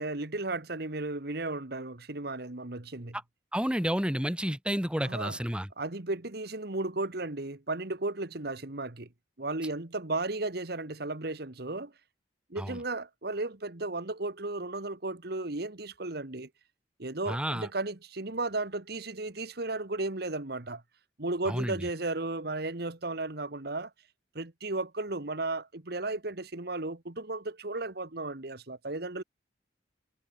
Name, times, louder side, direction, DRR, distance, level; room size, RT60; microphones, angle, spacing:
voice 1, 0.0-3.2 5.0-5.4 5.8-9.1 9.4-11.9 12.5-16.5 17.0-20.8 21.2-23.9 24.4-29.2, right 2 dB, 60° right, 1.7 m, -34 dB
voice 2, 3.5-5.7 12.6-12.8 17.3-17.7 21.4-21.9, equal, 5° right, 3.2 m, -30 dB
head